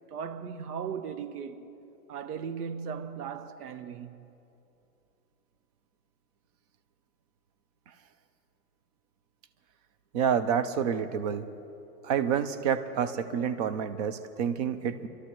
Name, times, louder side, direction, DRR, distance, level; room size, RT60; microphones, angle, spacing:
voice 1, 0.1-1.7 2.1-4.3, right 7 dB, 70° right, 1.0 m, -37 dB
voice 2, 10.1-11.4 12.0-15.1, right 7 dB, 30° right, 0.4 m, -28 dB
26.5 x 12.5 x 3.0 m
hypercardioid pair, 130°, 47 cm